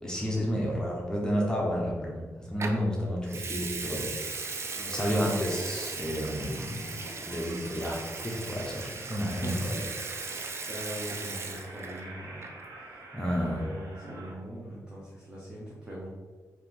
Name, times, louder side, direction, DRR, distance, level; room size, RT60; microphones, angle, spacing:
voice 1, 0.0-4.4 4.9-9.8 10.2-10.4 13.1-13.6, equal, 10° left, -3 dB, 0.9 m, -31 dB
Water tap faucet / Sink (filling or washing) / Liquid, 2.6-2.8 3.3-12.0 12.3-12.7, right 4 dB, 45° right, 0.5 m, -38 dB
sound 1, 4.2-14.3, right 2 dB, 90° right, 0.9 m, -47 dB
voice 2, 9.2-9.7 10.2-12.5 12.7-13.0 13.4-16.1, equal, 15° right, -7 dB, 1.0 m, -41 dB
4.4 x 2.9 x 3.8 m, 1.4 s
cardioid pair, 95°, 6 cm